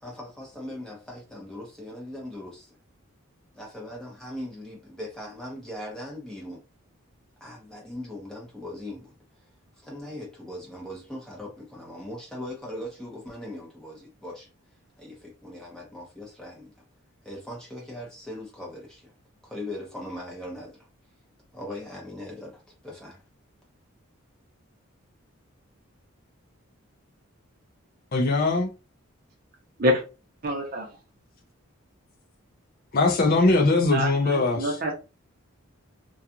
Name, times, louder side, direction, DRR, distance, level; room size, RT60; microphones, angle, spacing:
voice 1, 0.0-2.8 3.5-6.6 7.4-9.1 9.8-14.5 15.0-16.7 17.2-19.1 19.4-20.9 21.5-23.2, left 1 dB, 5° left, 0.8 m, -39 dB
voice 2, 28.1-28.7 32.9-34.8, left 3 dB, 45° left, 0.4 m, -21 dB
voice 3, 30.4-30.9 33.9-34.9, equal, 45° right, 0.7 m, -26 dB
2.4 x 2.3 x 2.8 m
head